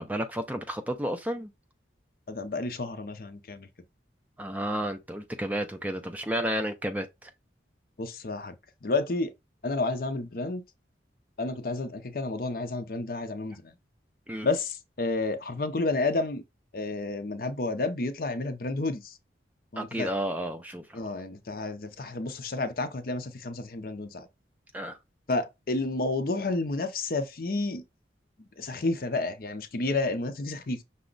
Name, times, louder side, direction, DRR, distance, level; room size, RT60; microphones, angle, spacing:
voice 1, 0.0-1.5 4.4-7.3 14.3-14.5 19.8-21.1 24.7-25.0, equal, 10° right, 0.4 m, -32 dB
voice 2, 2.3-3.7 8.0-8.5 8.8-9.3 9.6-10.6 11.4-13.7 14.4-16.4 16.7-19.2 19.7-20.1 20.9-24.3 25.3-27.8 28.6-30.8, left 3 dB, 50° left, 0.6 m, -30 dB
5.9 x 2.1 x 3.8 m
head